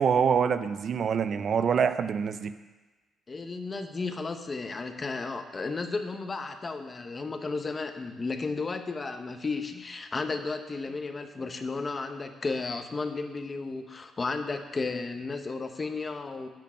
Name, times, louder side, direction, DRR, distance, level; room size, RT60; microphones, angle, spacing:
voice 1, 0.0-2.5, right 7 dB, 55° right, 11 dB, 0.5 m, -25 dB
voice 2, 3.3-16.5, left 3 dB, 30° left, 7 dB, 0.8 m, -33 dB
10.5 x 4.5 x 7.3 m, 1.2 s
cardioid pair, 90°, 0 cm